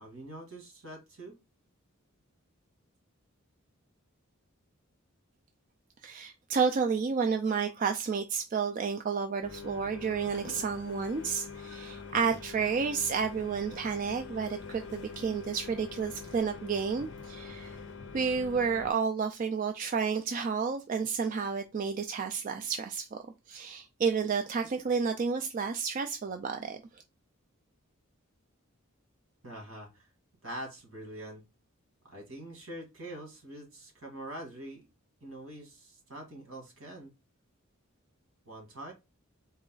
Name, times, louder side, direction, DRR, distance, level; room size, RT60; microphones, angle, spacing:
voice 1, 0.0-1.3 29.4-30.1 30.4-31.4 32.1-34.9 35.2-37.1 38.5-38.9, right 1 dB, 75° right, 2.1 m, -44 dB
voice 2, 6.0-17.8 18.1-23.2 23.5-26.8, right 5 dB, 40° right, 0.3 m, -31 dB
sound 1, 9.4-18.9, left 5 dB, 55° left, 0.6 m, -44 dB
4.1 x 2.3 x 3.8 m
head